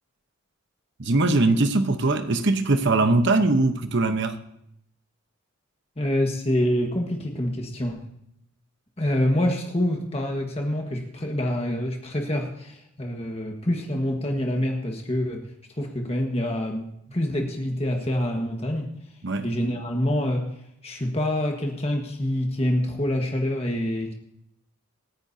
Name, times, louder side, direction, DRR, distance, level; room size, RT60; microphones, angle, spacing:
voice 1, 1.0-4.4 19.2-19.5, right 2 dB, 50° right, 8 dB, 1.0 m, -21 dB
voice 2, 6.0-8.0 9.0-15.5 15.8-18.9 19.4-20.5 20.8-24.1, left 1 dB, 25° left, 1 dB, 1.5 m, -26 dB
26.5 x 9.8 x 2.8 m, 0.75 s
head